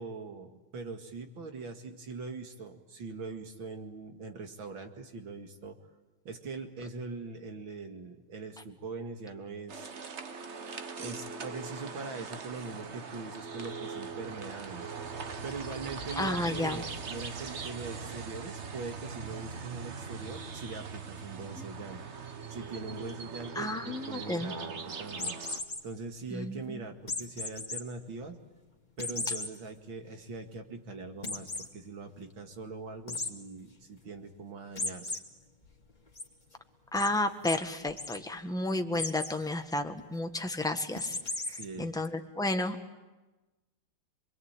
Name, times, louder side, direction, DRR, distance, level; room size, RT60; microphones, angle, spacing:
voice 1, 0.0-5.8 6.2-9.9 11.0-14.9 15.4-22.0 22.5-25.4 25.8-28.4 29.0-35.2 41.5-41.9, right 3 dB, 65° right, 5 dB, 2.8 m, -42 dB
sound 1, 9.7-25.6, right 5 dB, 40° right, 1.2 m, -41 dB
voice 2, 16.2-16.8 21.6-21.7 23.5-24.5 26.3-26.8 36.9-41.2 41.5-43.0, left 2 dB, ahead, 5 dB, 1.2 m, -32 dB
sound 2, 25.1-25.8 27.1-27.8 28.2-28.3 29.0-29.5 30.0-30.1 30.4-30.5 31.2-31.7 33.1-33.3 34.8-35.2 35.6-36.2 37.0-37.1 37.4-37.6 37.9-38.2 38.9-39.3 41.0-41.6, left 3 dB, 20° left, 2.5 m, -35 dB
27.0 x 22.0 x 9.0 m, 1.1 s
omnidirectional pair, 2.3 m